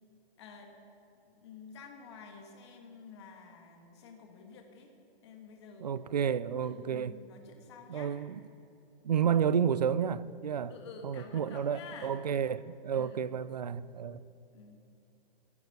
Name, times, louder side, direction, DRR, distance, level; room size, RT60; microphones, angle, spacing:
voice 1, 0.4-0.7 1.1-4.9 5.2-8.1 10.7-12.2 12.9-13.3 14.5-14.8, left 5 dB, 25° left, 1.6 m, -50 dB
voice 2, 5.8-7.1 7.9-8.4 9.0-10.7 11.0-14.2, right 8 dB, 45° right, 0.4 m, -31 dB
15.0 x 9.4 x 7.9 m
hypercardioid pair, 175°, 30 cm